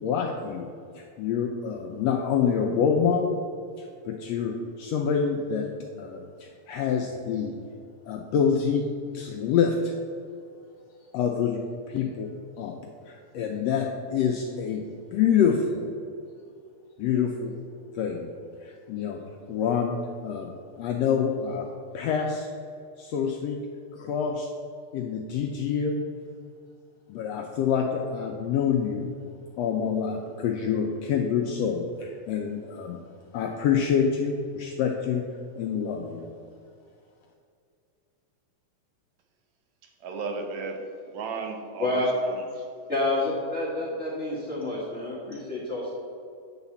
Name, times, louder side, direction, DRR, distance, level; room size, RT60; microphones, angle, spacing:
voice 1, 0.0-3.4 3.8-7.5 8.1-9.9 11.1-11.6 11.9-12.3 12.6-12.7 13.0-14.8 15.1-15.9 17.0-17.5 17.9-18.3 18.6-19.2 19.5-20.5 20.8-21.7 21.9-22.5 23.0-23.6 23.9-24.5 24.9-26.0 27.1-29.1 29.6-33.0 33.3-35.2 35.6-36.3, left 7 dB, 90° left, 2 dB, 1.5 m, -27 dB
voice 2, 39.8-42.7, right 4 dB, 70° right, 4 dB, 2.0 m, -35 dB
voice 3, 42.9-45.9, left 2 dB, 55° left, -6 dB, 0.7 m, -29 dB
8.9 x 4.1 x 7.0 m, 2.4 s
omnidirectional pair, 3.5 m